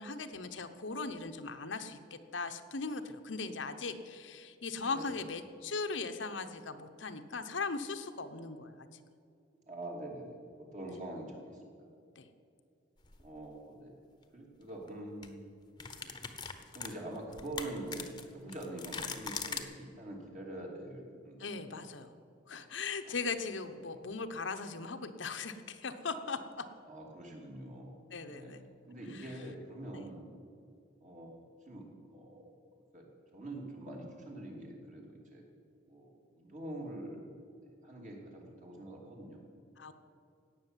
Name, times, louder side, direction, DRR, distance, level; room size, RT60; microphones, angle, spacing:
voice 1, 0.0-8.7 12.2-12.3 21.4-22.1 22.5-26.6 28.1-28.6 29.1-29.2 29.9-30.0 39.8-39.9, left 4 dB, 80° left, 7 dB, 1.0 m, -39 dB
voice 2, 9.7-11.6 13.2-14.0 14.3-15.4 16.0-16.1 16.7-21.9 23.0-23.2 23.8-24.2 26.8-28.0 28.2-28.6 28.9-30.2 31.0-32.5 32.9-35.5 35.8-37.2 37.8-39.4, right 1 dB, 40° right, -1 dB, 2.9 m, -45 dB
sound 1, 13.0-13.2 14.7-14.9 15.2-15.3 15.8-19.6, left 5 dB, 25° left, 1.0 m, -41 dB
17.0 x 6.5 x 9.1 m, 2.4 s
head